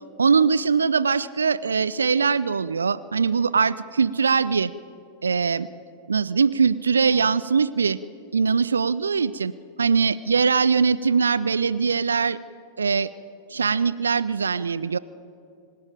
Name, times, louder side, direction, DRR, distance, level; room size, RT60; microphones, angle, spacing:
voice 1, 0.2-4.7 5.2-5.7 6.1-8.0 8.3-9.5 9.8-12.4 12.8-13.1 13.5-15.0, right 5 dB, 75° right, 19 dB, 0.5 m, -21 dB
25.5 x 16.5 x 9.1 m, 2.6 s
figure-of-eight pair, 90°, 0 cm